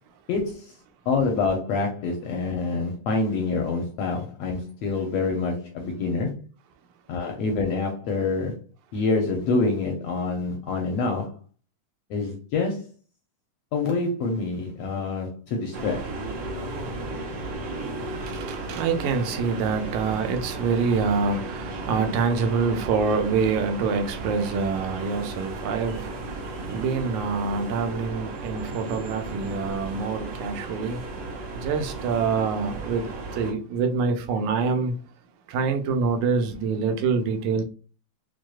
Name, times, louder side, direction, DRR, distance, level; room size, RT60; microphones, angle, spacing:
voice 1, 0.3-0.7 1.1-6.4 7.1-8.6 8.9-11.3 12.1-12.8 13.7-16.1, left 3 dB, 75° left, 1.5 m, -26 dB
sound 1, 15.7-33.5, right 2 dB, 55° right, 1.8 m, -35 dB
voice 2, 18.0-31.0 31.6-33.0 33.3-34.9 35.5-37.6, right 5 dB, 85° right, 2.0 m, -26 dB
6.2 x 2.3 x 2.3 m
omnidirectional pair, 3.3 m